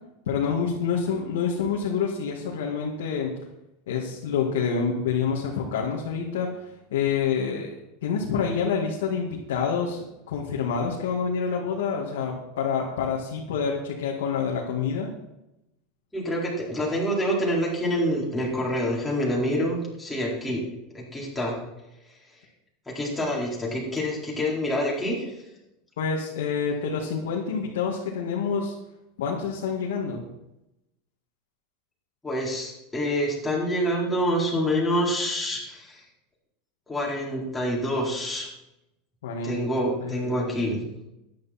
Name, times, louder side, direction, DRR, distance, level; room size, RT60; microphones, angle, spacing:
voice 1, 0.3-3.3 3.9-7.7 8.0-15.1 26.0-28.7 29.2-30.2 39.2-39.6 40.0-40.5, left 6 dB, 90° left, -2 dB, 2.1 m, -27 dB
voice 2, 16.1-20.6 20.9-21.6 22.9-25.3 32.2-36.0 36.9-38.5 39.4-40.8, equal, 10° left, -5 dB, 4.5 m, -27 dB
13.0 x 10.5 x 4.4 m, 0.92 s
supercardioid pair, 125°, 0 cm